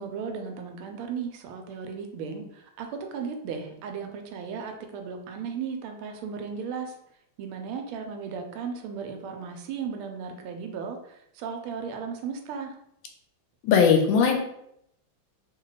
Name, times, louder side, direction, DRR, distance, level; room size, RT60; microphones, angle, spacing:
voice 1, 0.0-6.9 7.4-11.0 11.4-12.7, right 6 dB, 85° right, 4 dB, 1.5 m, -35 dB
voice 2, 13.6-14.4, left 6 dB, 75° left, 3 dB, 1.3 m, -19 dB
3.5 x 2.2 x 3.9 m, 0.75 s
omnidirectional pair, 2.3 m